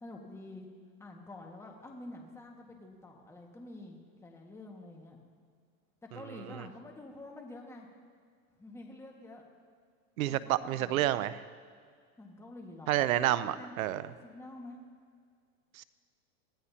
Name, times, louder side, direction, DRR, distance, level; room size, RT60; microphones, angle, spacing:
voice 1, 0.0-0.7 1.0-5.2 6.0-7.9 8.6-9.4 10.3-11.1 12.2-14.8, left 2 dB, 5° left, 0 dB, 1.7 m, -48 dB
voice 2, 10.2-11.4 12.9-14.1 15.8-15.9, right 13 dB, 90° right, 15 dB, 0.7 m, -29 dB
23.0 x 15.5 x 2.9 m, 2.1 s
supercardioid pair, 140°, 41 cm